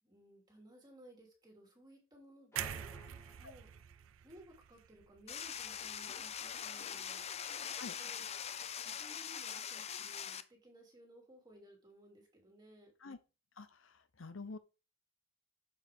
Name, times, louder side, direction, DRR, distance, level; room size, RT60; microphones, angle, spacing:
voice 1, 0.0-3.0 3.4-3.7 4.2-7.2 8.0-8.3 8.8-12.9, right 1 dB, 20° right, 3.0 m, -59 dB
sound 1, 2.5-4.3, left 1 dB, 15° left, 1.6 m, -55 dB
sound 2, 2.6-6.6 6.9-7.1, right 11 dB, 75° right, 0.4 m, -46 dB
sound 3, 5.3-10.4, left 8 dB, 30° left, 0.5 m, -42 dB
voice 2, 13.6-14.6, left 3 dB, 75° left, 0.8 m, -48 dB
7.1 x 6.3 x 3.7 m
head